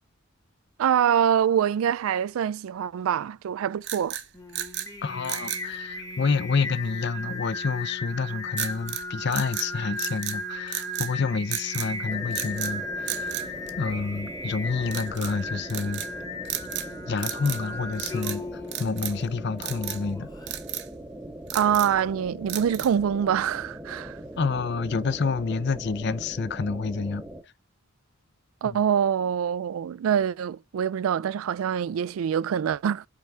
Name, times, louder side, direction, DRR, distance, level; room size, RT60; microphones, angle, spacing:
voice 1, 0.8-4.2 21.5-24.2 28.6-33.1, right 8 dB, 80° right, 0.3 m, -25 dB
sound 1, 3.8-4.9 5.2-5.7 8.6-9.0 9.3-10.4 10.7-11.1 11.5-11.9 12.3-12.7 13.1-14.2 14.9-15.3 15.7-16.1 16.4-16.9 17.2-17.7 17.9-18.4 18.7-19.2 19.6-20.0 20.5-20.9 21.3-22.0 22.5-23.0, right 12 dB, 55° right, 0.8 m, -34 dB
Singing, 4.3-20.6, left 2 dB, 20° left, 1.2 m, -36 dB
voice 2, 5.0-13.5 13.8-16.0 17.1-20.3 24.4-27.2 28.6-28.8, left 4 dB, 55° left, 0.6 m, -28 dB
sound 2, 12.1-27.4, right 1 dB, 10° right, 0.7 m, -41 dB
5.7 x 4.7 x 4.3 m
head